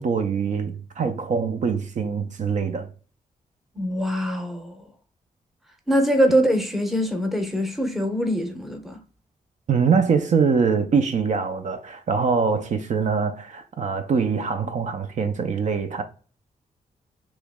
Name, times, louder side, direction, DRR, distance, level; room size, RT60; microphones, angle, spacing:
voice 1, 0.0-2.9 9.7-16.0, right 5 dB, 55° right, 0.5 m, -23 dB
voice 2, 3.7-4.8 5.9-9.0, equal, ahead, 0.7 m, -23 dB
3.1 x 2.9 x 3.5 m
wide cardioid pair, 125°, 15 cm